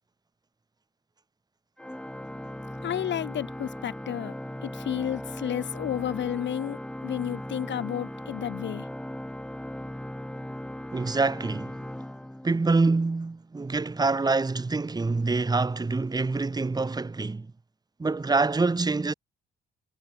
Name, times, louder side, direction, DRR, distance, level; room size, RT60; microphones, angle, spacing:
Organ, 1.8-12.9, left 1 dB, 5° left, 1.5 m, -38 dB
voice 1, 2.8-4.3 4.6-8.9, left 10 dB, 65° left, 4.4 m, -32 dB
voice 2, 10.9-11.7 12.4-17.5 18.0-19.1, right 3 dB, 20° right, 1.7 m, -26 dB
cardioid pair, 90°, 20 cm